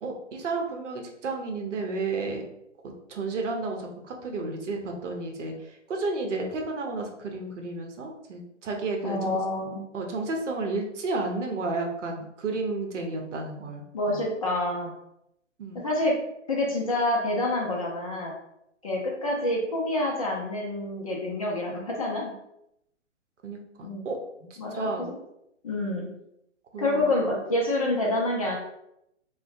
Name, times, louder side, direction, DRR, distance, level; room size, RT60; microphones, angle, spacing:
voice 1, 0.0-2.4 3.1-9.4 9.9-14.2 15.6-15.8 23.4-24.2 24.7-25.1 26.7-27.1, right 3 dB, 75° right, 2 dB, 0.7 m, -32 dB
voice 2, 9.0-9.8 13.9-14.9 15.7-16.2 16.5-18.3 18.8-22.3 23.8-24.0 24.6-25.1 25.6-26.1 26.8-28.6, left 1 dB, 30° left, -2 dB, 0.4 m, -27 dB
2.5 x 2.1 x 2.5 m, 0.79 s
hypercardioid pair, 140°, 37 cm